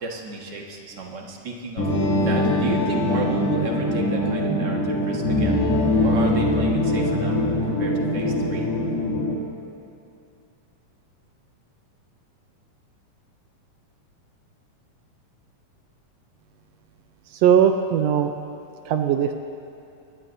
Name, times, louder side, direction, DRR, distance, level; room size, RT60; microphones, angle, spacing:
voice 1, 0.0-1.9 2.2-5.6 6.0-8.7, right 3 dB, 45° right, -1 dB, 1.7 m, -32 dB
sound 1, 1.8-9.3, left 1 dB, 50° left, 3.4 m, -22 dB
voice 2, 17.4-18.3 18.9-19.3, right 8 dB, 90° right, 6 dB, 1.4 m, -19 dB
23.5 x 20.0 x 2.7 m, 2.6 s
omnidirectional pair, 3.7 m